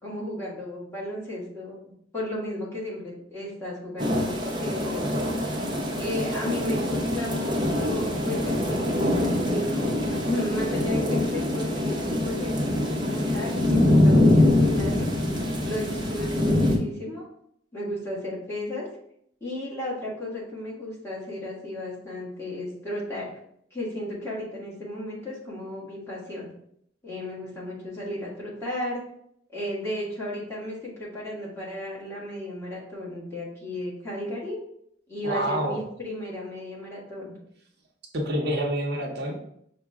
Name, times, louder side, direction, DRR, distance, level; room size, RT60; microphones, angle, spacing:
voice 1, 0.0-1.8 2.1-5.1 5.9-15.2 15.6-17.2 17.7-18.9 19.4-23.4 23.7-26.5 27.0-29.0 29.5-34.6 35.1-37.3, left 1 dB, 15° left, -7 dB, 1.5 m, -34 dB
sound 1, 4.0-16.8, left 1 dB, 25° right, 0.8 m, -24 dB
voice 2, 35.2-35.8 38.1-39.5, right 1 dB, 60° right, 0 dB, 0.8 m, -27 dB
5.9 x 2.2 x 3.5 m, 0.70 s
head